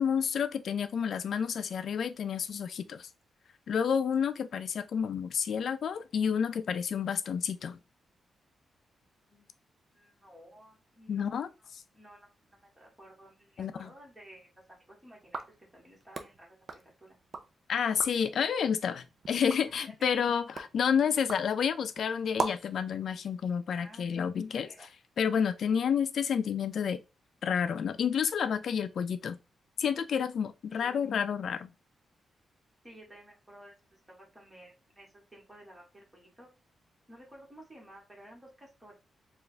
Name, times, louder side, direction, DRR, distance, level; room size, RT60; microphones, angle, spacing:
voice 1, 0.0-3.1 3.7-7.8 11.1-11.5 13.6-13.9 17.7-24.7 25.2-27.0 27.4-29.4 29.8-31.7, left 7 dB, 60° left, 0.4 m, -30 dB
voice 2, 9.9-17.2 19.6-20.1 23.7-24.9 30.7-31.0 32.8-36.5 37.1-38.9, right 1 dB, 10° right, 1.7 m, -54 dB
sound 1, 15.2-17.5 17.8-18.3 18.8-22.8, right 4 dB, 40° right, 0.5 m, -41 dB
4.5 x 2.5 x 3.3 m
wide cardioid pair, 155°, 0 cm